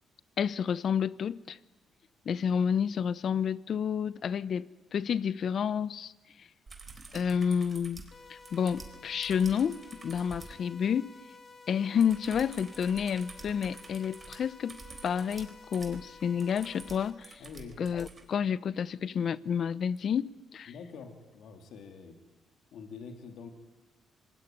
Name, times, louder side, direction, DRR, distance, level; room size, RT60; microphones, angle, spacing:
voice 1, 0.4-1.6 2.3-4.7 4.9-6.1 7.1-8.0 8.3-11.1 11.7-17.4 17.8-20.7, left 7 dB, 55° left, 0.8 m, -30 dB
sound 1, 6.7-10.6 12.0-18.2 20.0-20.1, right 4 dB, 30° right, 4.0 m, -49 dB
sound 2, 8.1-17.1, left 4 dB, 35° left, 2.4 m, -52 dB
voice 2, 17.4-17.8 20.7-22.2 22.7-23.5, left 5 dB, 75° left, 3.4 m, -46 dB
26.5 x 20.0 x 9.5 m
cardioid pair, 90°, 0 cm